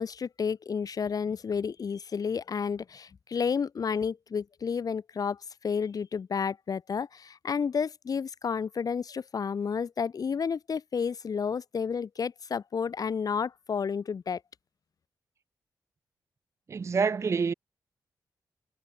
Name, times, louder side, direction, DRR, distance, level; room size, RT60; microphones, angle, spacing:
voice 1, 0.0-5.4 5.6-14.4, left 6 dB, 55° left, 0.7 m, -31 dB
voice 2, 16.7-17.5, right 5 dB, 40° right, 0.4 m, -27 dB
cardioid pair, 60°, 8 cm